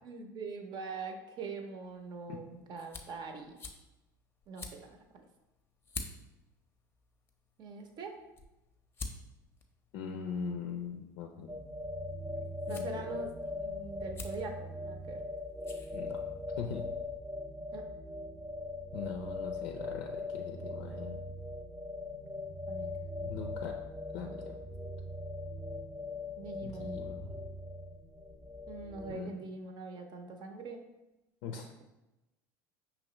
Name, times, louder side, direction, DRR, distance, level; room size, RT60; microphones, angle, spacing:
voice 1, 0.0-3.6 4.5-5.3 7.6-8.2 12.7-15.2 17.7-17.9 22.7-22.9 23.2-23.6 26.4-27.0 28.7-30.9, right 4 dB, 45° right, 4 dB, 0.7 m, -43 dB
sound 1, 1.8-16.6, left 3 dB, 20° left, 0.6 m, -50 dB
voice 2, 9.9-11.6 12.7-13.1 15.9-16.2 16.6-16.9 18.9-21.2 23.2-23.7 24.1-24.5 26.6-27.4 29.1-29.3 31.4-31.7, left 6 dB, 65° left, 3 dB, 0.4 m, -41 dB
sound 2, 11.5-29.1, left 2 dB, 15° right, 0.8 m, -40 dB
5.1 x 3.0 x 3.0 m, 0.99 s
hypercardioid pair, 80°, 10 cm